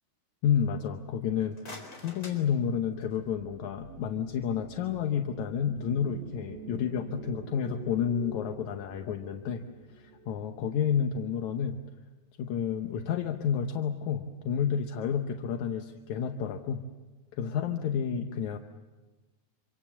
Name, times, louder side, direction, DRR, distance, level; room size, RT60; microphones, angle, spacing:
voice 1, 0.4-9.6 9.9-11.8 12.4-16.8 17.3-18.6, left 7 dB, 70° left, 5 dB, 2.1 m, -30 dB
sound 1, 1.3-3.3, left 2 dB, 25° left, 4.5 m, -48 dB
sound 2, 2.9-11.3, right 3 dB, 50° right, 3.6 m, -47 dB
26.5 x 26.0 x 7.3 m, 1.2 s
omnidirectional pair, 4.1 m